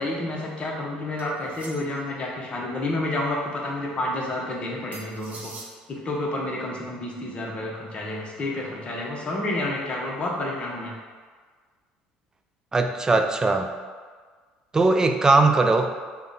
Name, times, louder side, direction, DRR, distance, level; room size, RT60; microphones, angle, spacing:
voice 1, 0.0-5.5 5.9-10.9, left 1 dB, 35° left, -2 dB, 0.8 m, -29 dB
sound 1, 1.2-2.1 4.9-5.7, right 3 dB, 50° right, 0.7 m, -43 dB
voice 2, 12.7-13.7 14.7-15.9, right 3 dB, 20° right, 5 dB, 0.3 m, -20 dB
3.5 x 2.2 x 3.8 m, 1.5 s
supercardioid pair, 85°, 3 cm